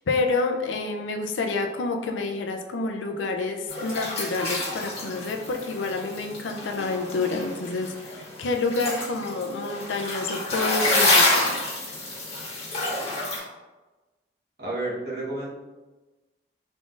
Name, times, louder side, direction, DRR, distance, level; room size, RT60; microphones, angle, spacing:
voice 1, 0.1-11.6, left 3 dB, 90° left, 3 dB, 0.5 m, -28 dB
sound 1, 3.7-13.4, left 2 dB, 35° left, 1.4 m, -27 dB
voice 2, 14.6-15.5, right 2 dB, 55° right, -6 dB, 1.1 m, -30 dB
3.7 x 3.7 x 2.5 m, 1.2 s
head